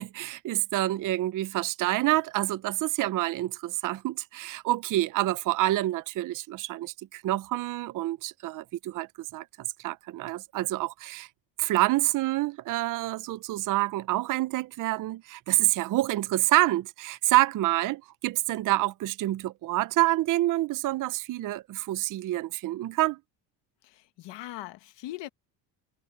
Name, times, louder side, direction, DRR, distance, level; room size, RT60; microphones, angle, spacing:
voice 1, 0.0-9.5 9.8-11.3 11.6-23.2, right 16 dB, 45° right, 0.5 m, -27 dB
voice 2, 23.8-25.3, left 15 dB, 70° left, 1.4 m, -40 dB
cardioid pair, 145°, 44 cm